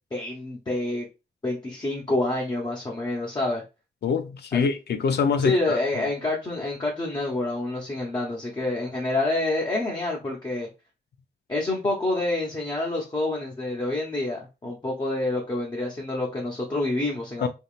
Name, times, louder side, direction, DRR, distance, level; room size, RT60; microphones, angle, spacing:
voice 1, 0.1-1.1 1.4-3.6 4.5-4.7 5.4-10.7 11.5-17.5, left 2 dB, 25° left, 0.8 m, -27 dB
voice 2, 4.0-5.8 17.4-17.5, left 5 dB, 75° left, 0.6 m, -24 dB
4.1 x 3.6 x 2.4 m
wide cardioid pair, 160°, 17 cm